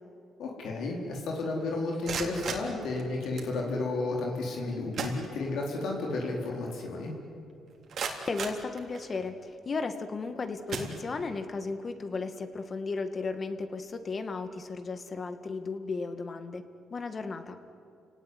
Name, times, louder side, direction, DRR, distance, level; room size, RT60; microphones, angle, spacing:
voice 1, 0.4-7.1, left 2 dB, 75° left, -1 dB, 4.2 m, -32 dB
sound 1, 1.8-3.6 4.5-4.6 4.9-5.8 6.2-6.3 6.8-6.9 7.5-9.4 10.0-10.2 10.7-11.5, right 5 dB, 60° right, 3.6 m, -38 dB
voice 2, 8.3-16.6 16.9-17.6, left 4 dB, 40° left, 9 dB, 2.1 m, -35 dB
30.0 x 18.0 x 9.7 m, 2.6 s
cardioid pair, 90°, 0 cm